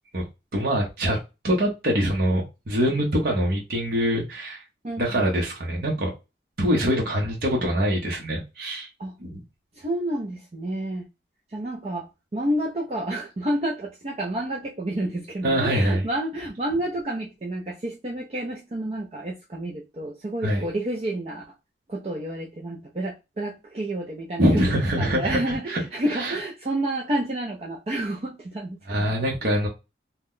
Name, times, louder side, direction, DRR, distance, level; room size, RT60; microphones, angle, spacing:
voice 1, 0.5-1.2 1.4-4.6 5.0-6.1 6.6-8.9 9.2-9.4 15.4-16.0 20.4-20.6 24.4-25.8 26.1-26.4 28.9-29.7, equal, 55° right, 0.8 m, -24 dB
voice 2, 4.8-5.2 9.0-9.1 9.7-11.1 11.5-12.1 12.3-21.4 21.9-29.1, right 1 dB, 35° right, 0.5 m, -30 dB
2.8 x 2.1 x 3.6 m
head